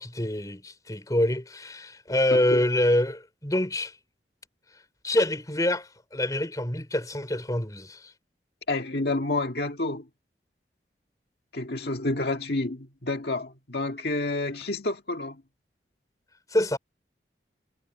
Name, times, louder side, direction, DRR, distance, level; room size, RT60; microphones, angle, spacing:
voice 1, 0.0-3.9 5.0-8.1 16.5-16.8, left 1 dB, 20° left, 3.3 m, -26 dB
voice 2, 2.3-2.7 8.7-10.1 11.5-15.4, left 2 dB, 65° left, 1.9 m, -29 dB
head